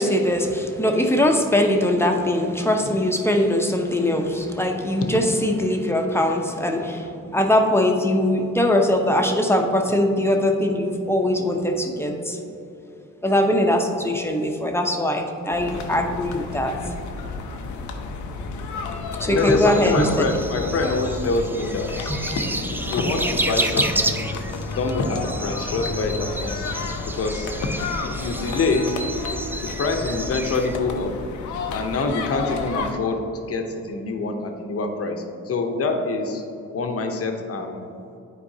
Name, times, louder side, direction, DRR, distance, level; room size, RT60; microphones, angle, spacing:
voice 1, 0.0-12.4 13.2-16.7 19.2-20.3 22.1-22.2, left 1 dB, 10° left, 2 dB, 0.8 m, -21 dB
sound 1, 15.5-32.9, left 4 dB, 80° left, 0.7 m, -32 dB
voice 2, 19.3-22.2 22.7-24.3 24.7-26.7 27.1-27.5 28.0-29.0 29.6-31.2 31.7-36.4 36.7-37.8, left 3 dB, 55° left, 4 dB, 0.9 m, -25 dB
sound 2, 19.4-30.8, right 2 dB, 5° right, 0.4 m, -31 dB
10.0 x 4.4 x 2.8 m, 2.8 s
cardioid pair, 80°, 29 cm